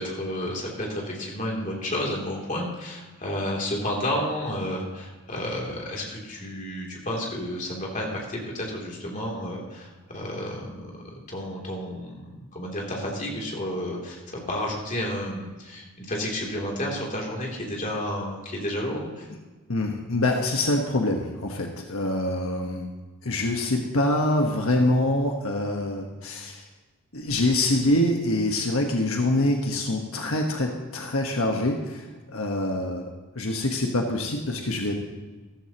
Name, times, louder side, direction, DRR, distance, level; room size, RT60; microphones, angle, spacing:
voice 1, 0.0-19.3, left 1 dB, 35° left, -2 dB, 3.0 m, -31 dB
voice 2, 19.7-22.9 23.2-26.7 27.1-35.0, left 1 dB, 80° left, 2 dB, 1.3 m, -25 dB
14.5 x 14.0 x 3.0 m, 1.3 s
head